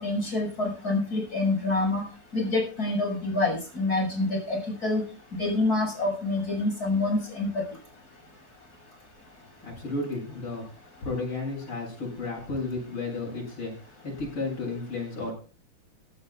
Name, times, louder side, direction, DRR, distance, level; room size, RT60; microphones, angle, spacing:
voice 1, 0.0-2.0 2.3-5.0 5.4-7.5, left 2 dB, 40° left, 2 dB, 7.4 m, -26 dB
voice 2, 9.6-10.6 11.0-13.7 14.0-15.3, left 3 dB, 85° left, -3 dB, 8.9 m, -33 dB
18.5 x 16.5 x 2.4 m, 0.37 s
omnidirectional pair, 2.4 m